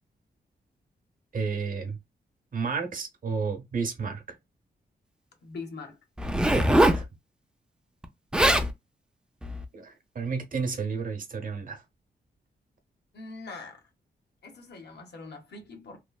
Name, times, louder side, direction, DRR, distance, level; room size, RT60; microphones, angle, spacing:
voice 1, 1.3-2.0 2.5-4.4 6.5-7.1 9.7-11.8, right 5 dB, 50° right, 0.8 m, -32 dB
voice 2, 5.4-6.0 13.1-13.8 14.4-16.0, left 3 dB, 70° left, 1.0 m, -42 dB
Zipper (clothing), 6.2-7.0 8.0-8.1 8.3-8.7 9.4-9.6, right 1 dB, 5° right, 0.3 m, -22 dB
3.1 x 2.0 x 2.2 m
wide cardioid pair, 135°, 18 cm